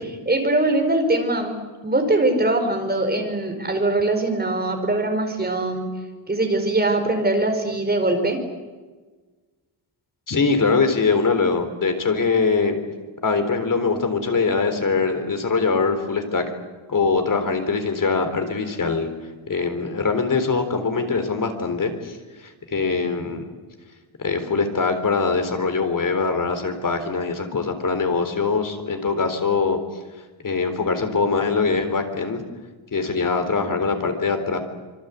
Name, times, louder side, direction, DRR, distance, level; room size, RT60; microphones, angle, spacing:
voice 1, 0.0-5.9 6.3-8.4, right 2 dB, 20° right, 4 dB, 4.8 m, -22 dB
voice 2, 10.3-12.8 13.2-16.5 16.9-19.1 19.5-22.2 22.7-23.5 24.2-29.8 30.4-32.4 32.9-34.6, left 4 dB, 40° left, 7 dB, 3.8 m, -22 dB
26.0 x 24.5 x 8.3 m, 1.3 s
wide cardioid pair, 140°, 47 cm